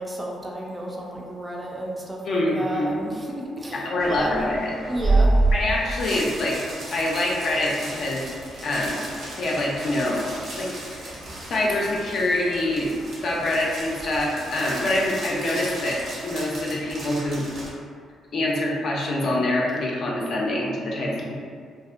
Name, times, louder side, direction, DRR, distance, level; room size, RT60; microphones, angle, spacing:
voice 1, 0.0-4.4 4.9-5.4, right 1 dB, 20° right, -2 dB, 0.4 m, -32 dB
voice 2, 2.2-3.0 3.8-4.7 5.5-6.6 6.9-8.2 8.6-9.0 9.4-10.2 10.6-11.1 11.5-12.9 13.2-17.4 18.3-21.3, left 1 dB, 60° left, -3 dB, 0.4 m, -25 dB
sound 1, 4.0-17.7, right 2 dB, 70° right, 0.8 m, -30 dB
2.6 x 2.1 x 2.4 m, 2.1 s
cardioid pair, 90°, 0 cm